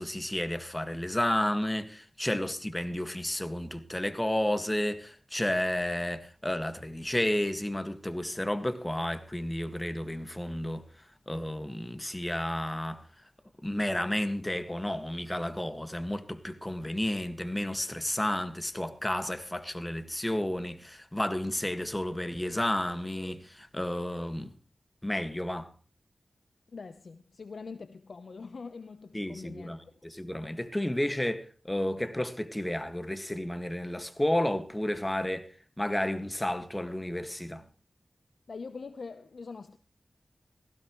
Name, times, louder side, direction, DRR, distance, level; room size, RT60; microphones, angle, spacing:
voice 1, 0.0-10.8 11.3-13.0 13.6-24.5 25.0-25.7 29.1-35.5 35.8-37.6, left 1 dB, 15° left, 1.8 m, -32 dB
voice 2, 26.7-30.0 38.5-39.8, left 4 dB, 75° left, 0.8 m, -43 dB
18.5 x 15.5 x 3.1 m
cardioid pair, 45°, 0 cm